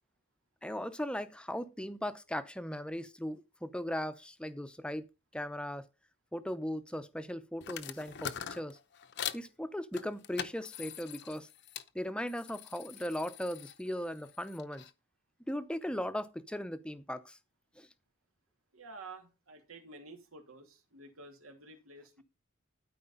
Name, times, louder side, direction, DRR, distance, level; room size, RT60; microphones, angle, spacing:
voice 1, 0.6-5.1 5.3-5.9 6.3-8.8 9.3-11.5 11.9-14.9 15.5-17.4 17.8-17.9, equal, 5° left, 0.7 m, -38 dB
sound 1, 7.6-9.5 9.9-11.9 12.3-14.9, left 9 dB, 55° left, 0.8 m, -43 dB
voice 2, 18.7-22.2, right 3 dB, 90° right, 2.7 m, -51 dB
12.5 x 5.0 x 5.4 m
head